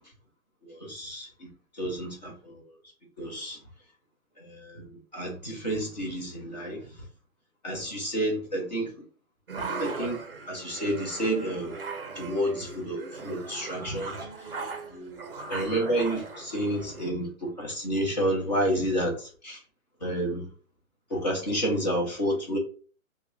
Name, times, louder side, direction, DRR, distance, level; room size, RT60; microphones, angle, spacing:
voice 1, 0.6-1.5 1.7-2.6 3.2-3.6 4.4-6.9 7.6-8.9 9.8-10.2 10.5-11.7 12.1-14.2 14.9-19.6 20.0-20.4 21.1-22.6, right 1 dB, 30° left, 0.9 m, -30 dB
sound 1, 9.5-17.1, right 3 dB, 45° right, 0.5 m, -38 dB
3.6 x 2.2 x 3.4 m
hypercardioid pair, 175°, 42 cm